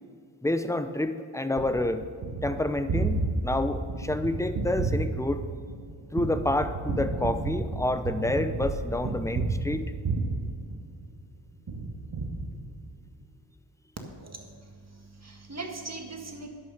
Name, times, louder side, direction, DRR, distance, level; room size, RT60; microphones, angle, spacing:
voice 1, 0.4-2.0 2.4-5.4 6.1-9.9, left 1 dB, 5° left, 10 dB, 0.7 m, -28 dB
Gunshot gunfire, 1.6-11.2 11.7-13.1, right 3 dB, 55° right, 1.6 m, -32 dB
voice 2, 14.1-16.5, right 3 dB, 35° right, 3 dB, 1.9 m, -41 dB
11.0 x 6.4 x 6.5 m, 2.3 s
cardioid pair, 45°, 45 cm